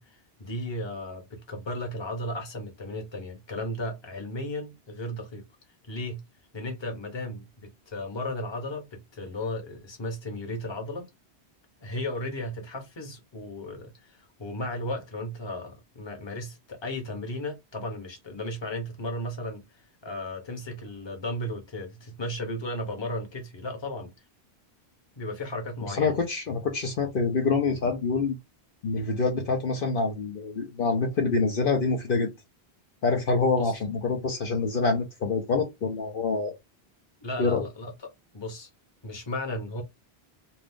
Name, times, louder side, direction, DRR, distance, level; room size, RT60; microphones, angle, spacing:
voice 1, 0.0-5.4 5.9-6.2 6.5-11.1 11.8-24.1 25.2-26.1 33.6-33.8 37.2-37.9 38.3-38.7 39.0-39.8, left 1 dB, 25° left, 0.9 m, -35 dB
voice 2, 25.9-28.4 28.8-32.3 33.0-36.5 37.4-37.6, left 4 dB, 60° left, 0.9 m, -26 dB
2.7 x 2.5 x 3.5 m
omnidirectional pair, 1.1 m